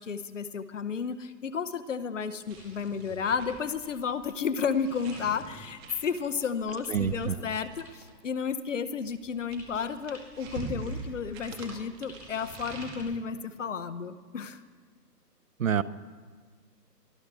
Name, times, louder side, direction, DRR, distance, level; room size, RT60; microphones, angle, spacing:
voice 1, 0.0-14.6, left 6 dB, 50° left, 13 dB, 0.8 m, -32 dB
sound 1, 2.5-8.2 9.1-13.0, right 4 dB, 15° right, 1.9 m, -44 dB
voice 2, 6.9-7.3 15.6-15.8, right 8 dB, 55° right, 18 dB, 0.5 m, -26 dB
23.5 x 14.0 x 3.4 m, 1.5 s
hypercardioid pair, 160°, 49 cm